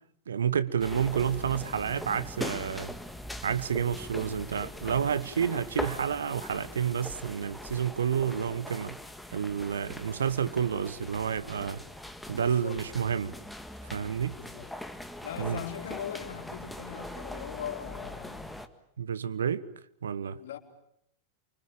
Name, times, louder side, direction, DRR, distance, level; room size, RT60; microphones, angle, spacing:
voice 1, 0.3-2.9 3.4-9.0 9.3-11.8 12.3-13.3 13.9-14.4 15.4-15.6 19.0-19.7 20.0-20.4, right 8 dB, 70° right, 1.2 m, -30 dB
sound 1, 0.8-18.7, left 1 dB, ahead, 1.8 m, -41 dB
voice 2, 12.2-12.8 14.3-14.7 15.0-18.6 20.4-20.6, left 10 dB, 60° left, 3.5 m, -40 dB
28.5 x 25.0 x 7.4 m
figure-of-eight pair, 90°, 0 cm